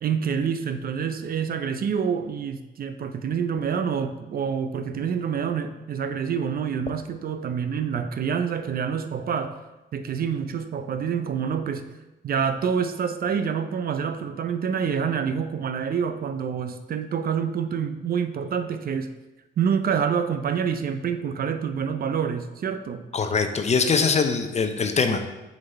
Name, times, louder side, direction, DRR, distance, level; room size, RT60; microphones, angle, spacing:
voice 1, 0.0-9.5 9.9-11.9 12.2-19.1 19.6-23.0, right 7 dB, 50° right, 9 dB, 0.5 m, -27 dB
voice 2, 23.1-25.2, left 5 dB, 35° left, 7 dB, 0.6 m, -22 dB
6.6 x 4.1 x 4.1 m, 1.0 s
cardioid pair, 90°, 20 cm